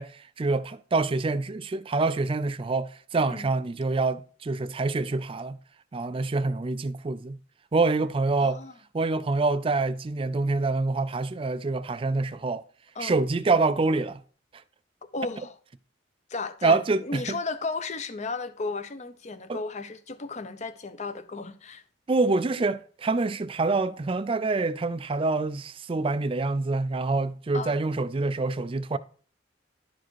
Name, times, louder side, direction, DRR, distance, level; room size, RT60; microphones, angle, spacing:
voice 1, 0.0-5.6 5.9-7.4 7.7-8.6 8.9-12.6 13.0-14.2 16.6-17.4 19.5-19.6 22.1-29.0, right 3 dB, 30° right, 0.4 m, -26 dB
voice 2, 8.4-8.7 13.0-13.2 15.1-15.6 16.3-21.8 27.5-27.8, left 3 dB, 40° left, 0.6 m, -34 dB
11.0 x 4.8 x 4.6 m
head